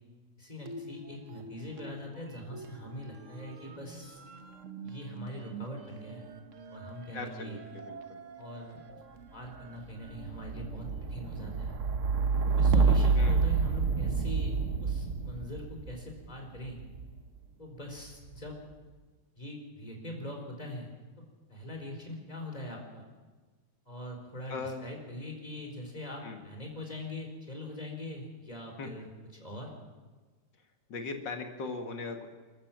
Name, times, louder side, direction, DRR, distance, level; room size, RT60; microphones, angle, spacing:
voice 1, 0.4-4.2 4.8-6.2 6.7-7.6 8.4-8.8 9.3-11.7 12.5-14.5 14.8-16.8 17.6-18.6 19.4-20.9 21.2-21.3 21.5-23.1 23.9-29.7, left 1 dB, 20° left, 2 dB, 4.6 m, -42 dB
sound 1, 0.6-2.0 2.2-17.3 18.0-18.6, right 4 dB, 50° right, 1.3 m, -31 dB
voice 2, 7.1-8.2 13.2-13.4 24.5-24.9 26.2-26.4 28.8-28.9 30.9-32.3, left 3 dB, 80° left, 4 dB, 2.4 m, -39 dB
29.0 x 13.5 x 7.5 m, 1.3 s
omnidirectional pair, 1.9 m